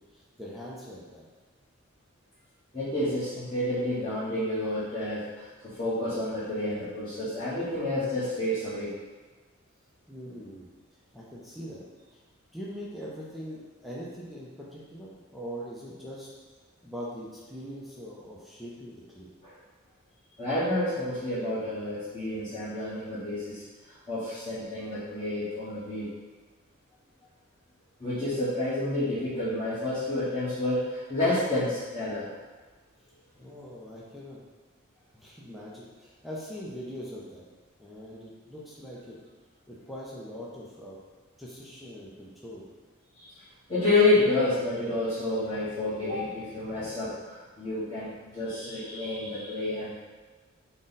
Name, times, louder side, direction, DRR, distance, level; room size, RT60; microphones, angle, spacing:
voice 1, 0.1-1.2 10.1-10.7 11.1-11.8 12.1-12.2 12.5-16.3 16.8-19.3 33.4-34.4 35.1-37.4 37.8-39.2 39.7-41.0 41.4-42.6, equal, ahead, -6 dB, 0.4 m, -42 dB
voice 2, 2.7-9.0 19.4-19.5 20.4-26.1 28.0-32.3 43.1-43.3 43.7-50.0, left 2 dB, 25° left, -13 dB, 1.0 m, -29 dB
3.8 x 2.1 x 3.9 m, 1.4 s
head